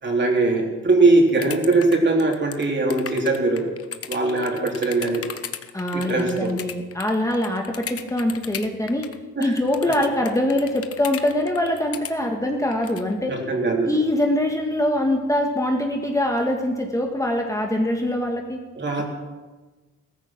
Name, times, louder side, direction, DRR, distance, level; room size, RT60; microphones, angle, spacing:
voice 1, 0.0-3.7 4.1-5.3 5.9-6.6 9.4-9.6 9.8-10.0 13.3-13.9 18.8-19.0, right 2 dB, 35° right, 0 dB, 4.0 m, -21 dB
sound 1, 1.3-9.2 9.4-12.1 12.7-13.1, left 8 dB, 50° left, 1.1 m, -35 dB
voice 2, 5.7-9.1 9.4-13.3 13.8-18.6, left 1 dB, 10° left, 2 dB, 1.7 m, -23 dB
15.5 x 14.0 x 6.1 m, 1.2 s
cardioid pair, 90°, 30 cm